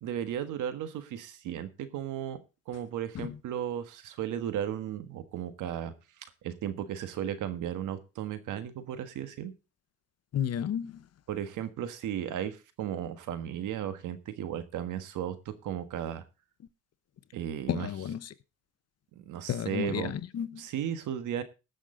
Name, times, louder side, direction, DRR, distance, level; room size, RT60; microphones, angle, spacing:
voice 1, 0.0-2.4 2.7-5.9 6.4-9.5 11.3-16.2 17.3-17.9 19.1-20.1 20.6-21.4, right 10 dB, 85° right, 1.5 m, -35 dB
voice 2, 10.3-11.1 17.7-18.3 19.5-20.6, left 9 dB, 55° left, 0.9 m, -32 dB
19.5 x 6.5 x 3.8 m
cardioid pair, 90°, 30 cm